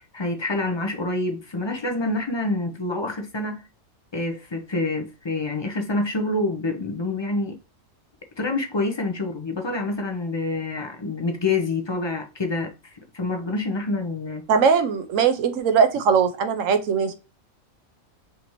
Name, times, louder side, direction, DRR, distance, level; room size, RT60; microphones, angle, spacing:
voice 1, 0.0-3.6 4.1-7.6 8.4-14.4, left 2 dB, 35° left, 0.4 m, -27 dB
voice 2, 14.5-17.1, right 6 dB, 70° right, 1.1 m, -20 dB
5.1 x 2.8 x 3.0 m
omnidirectional pair, 1.4 m